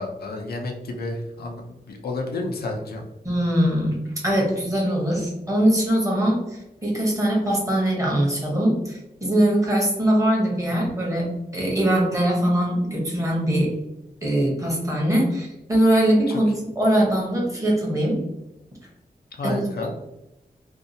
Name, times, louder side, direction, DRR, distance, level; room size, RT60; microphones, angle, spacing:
voice 1, 0.0-3.0 19.4-19.9, left 2 dB, 85° left, 2 dB, 0.5 m, -30 dB
voice 2, 3.2-13.7 14.2-18.2 19.4-19.7, right 1 dB, 20° right, -3 dB, 0.9 m, -22 dB
2.6 x 2.3 x 2.6 m, 0.94 s
wide cardioid pair, 130°, 16 cm